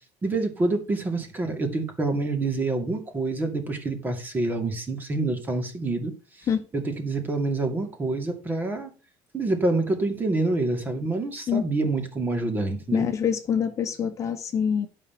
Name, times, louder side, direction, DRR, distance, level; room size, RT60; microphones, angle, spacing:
voice 1, 0.2-6.1 6.4-6.5 6.7-8.9 9.3-13.1, right 2 dB, 20° right, 2.3 m, -27 dB
voice 2, 12.9-14.9, left 7 dB, 35° left, 1.2 m, -25 dB
11.5 x 5.6 x 5.7 m
cardioid pair, 145°, 9 cm